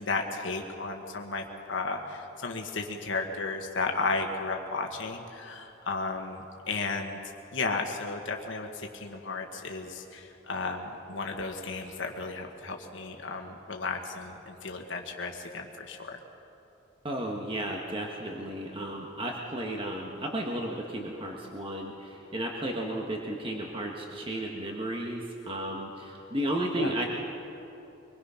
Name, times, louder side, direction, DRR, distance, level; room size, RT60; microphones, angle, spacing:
voice 1, 0.0-7.2 7.5-16.2 26.8-26.9, left 3 dB, 65° left, 3 dB, 1.5 m, -34 dB
voice 2, 17.0-27.1, right 1 dB, 25° right, 0 dB, 1.5 m, -33 dB
24.5 x 21.0 x 5.7 m, 3.0 s
head